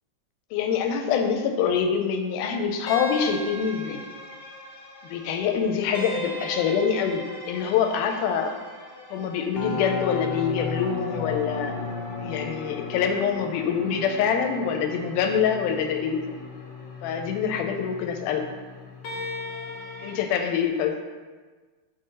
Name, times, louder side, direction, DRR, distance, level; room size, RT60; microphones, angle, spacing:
voice 1, 0.5-4.0 5.1-8.6 9.1-11.8 12.2-16.2 17.0-18.5 20.0-20.9, left 7 dB, 85° left, 4 dB, 2.1 m, -25 dB
sound 1, 2.9-20.1, left 3 dB, 65° left, 1.2 m, -36 dB
6.5 x 3.8 x 5.4 m, 1.4 s
omnidirectional pair, 3.7 m